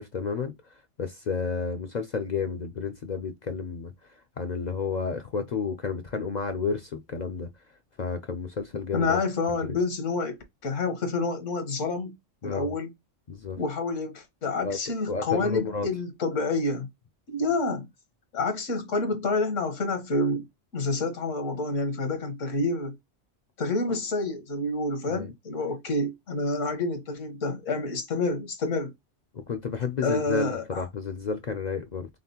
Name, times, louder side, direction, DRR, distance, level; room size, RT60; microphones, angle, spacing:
voice 1, 0.0-7.5 8.0-9.2 9.7-9.8 12.4-12.8 13.3-13.6 14.6-14.8 15.1-15.9 25.1-25.3 29.3-32.1, left 5 dB, 60° left, 0.4 m, -31 dB
voice 2, 8.9-10.4 10.6-12.1 12.4-12.9 13.6-16.9 17.3-17.9 18.3-20.4 20.7-22.9 23.6-28.9 30.0-30.8, left 3 dB, 80° left, 1.5 m, -28 dB
4.1 x 3.5 x 2.8 m
omnidirectional pair, 1.3 m